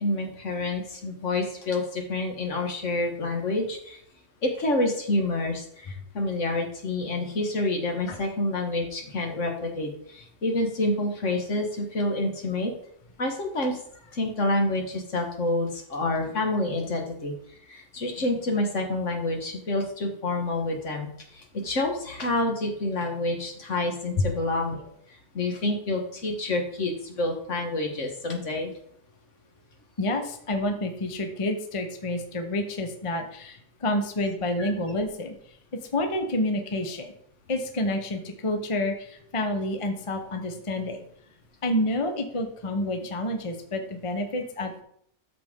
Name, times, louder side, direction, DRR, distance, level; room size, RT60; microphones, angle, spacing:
voice 1, 0.0-4.0 4.4-12.7 13.2-13.8 14.1-17.3 17.7-28.7 34.6-34.7, left 2 dB, 55° left, 2 dB, 1.7 m, -28 dB
voice 2, 30.0-35.3 35.9-37.1 37.5-41.0 41.6-44.8, left 1 dB, 25° left, 5 dB, 0.7 m, -28 dB
13.0 x 4.3 x 3.7 m, 0.68 s
omnidirectional pair, 1.6 m